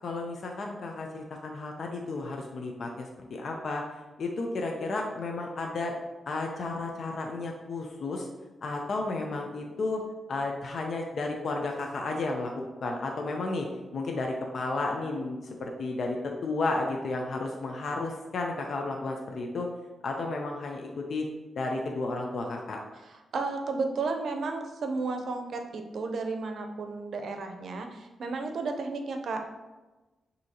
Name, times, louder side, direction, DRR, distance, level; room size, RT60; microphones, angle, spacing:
voice 1, 0.0-3.8 4.2-5.9 6.3-8.3 8.6-10.0 10.3-13.7 13.9-19.7 20.0-21.3 21.6-22.8, left 3 dB, 65° left, 1 dB, 0.5 m, -32 dB
voice 2, 23.3-29.4, right 3 dB, 70° right, 5 dB, 0.6 m, -33 dB
6.2 x 2.8 x 2.8 m, 1.1 s
cardioid pair, 90°, 0 cm